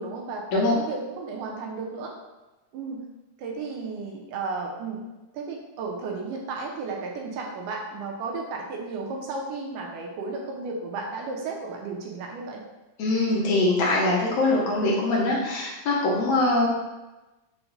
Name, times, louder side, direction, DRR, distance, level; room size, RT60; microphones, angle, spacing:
voice 1, 0.0-2.1 2.7-3.0 3.4-5.0 5.3-12.6, right 4 dB, 75° right, 0 dB, 2.0 m, -34 dB
voice 2, 13.0-16.7, left 2 dB, 75° left, -4 dB, 1.7 m, -23 dB
5.8 x 2.1 x 3.9 m, 1.1 s
omnidirectional pair, 3.9 m